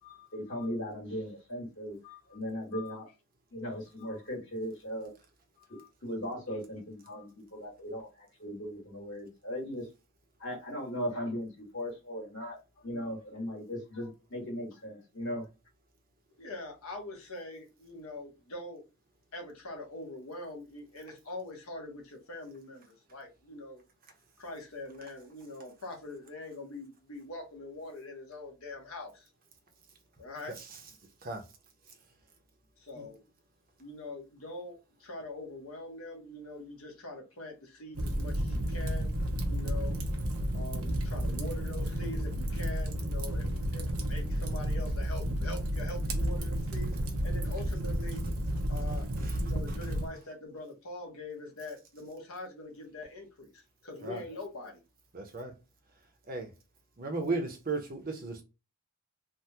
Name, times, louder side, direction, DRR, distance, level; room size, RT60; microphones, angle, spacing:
voice 1, 0.0-3.1 3.5-5.1 5.7-9.9 10.4-15.5, equal, 55° left, 1.7 m, -38 dB
voice 2, 16.4-18.8 19.3-23.8 24.4-29.3 30.2-30.5 32.8-33.3 33.8-39.1 39.5-40.0 40.5-46.9 47.2-48.2 48.7-49.0 49.3-54.8, left 2 dB, 70° left, 1.1 m, -43 dB
Fire, 37.9-50.1, equal, 80° right, 0.8 m, -32 dB
voice 3, 55.1-55.5 56.3-56.5 57.0-58.4, right 3 dB, 40° right, 0.8 m, -35 dB
3.4 x 2.2 x 2.8 m
head